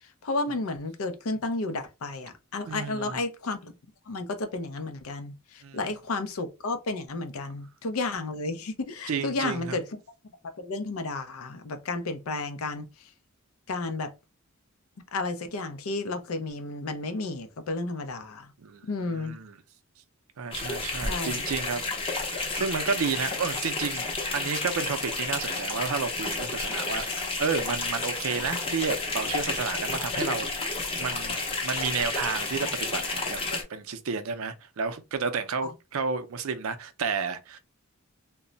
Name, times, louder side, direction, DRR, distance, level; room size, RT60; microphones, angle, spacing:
voice 1, 0.0-3.7 4.1-10.0 10.6-13.1 13.7-14.1 15.1-18.5 18.8-19.4 21.1-21.4 35.6-35.7, left 3 dB, 80° left, 0.5 m, -32 dB
voice 2, 2.7-3.2 5.6-5.8 9.1-9.8 18.6-19.5 20.4-21.8 22.3-24.0 24.3-30.7 31.0-37.6, right 5 dB, 75° right, 0.5 m, -31 dB
sound 1, 20.5-33.6, left 3 dB, 25° left, 0.6 m, -31 dB
2.2 x 2.0 x 3.8 m
head